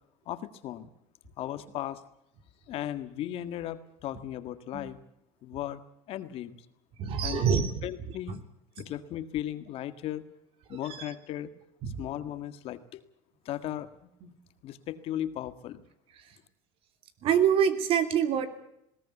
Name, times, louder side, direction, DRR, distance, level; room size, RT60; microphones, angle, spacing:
voice 1, 0.2-0.9 1.4-2.0 2.7-5.0 5.4-5.8 6.1-6.6 7.2-7.4 7.8-8.4 8.8-10.2 10.7-11.5 12.0-13.0 13.4-13.9 14.6-15.8, left 12 dB, 55° left, 11 dB, 1.8 m, -36 dB
voice 2, 7.0-7.7 10.9-11.0 11.8-11.9 17.2-18.5, right 8 dB, 55° right, 10 dB, 3.0 m, -25 dB
20.5 x 18.0 x 8.4 m, 0.76 s
cardioid pair, 130°, 12 cm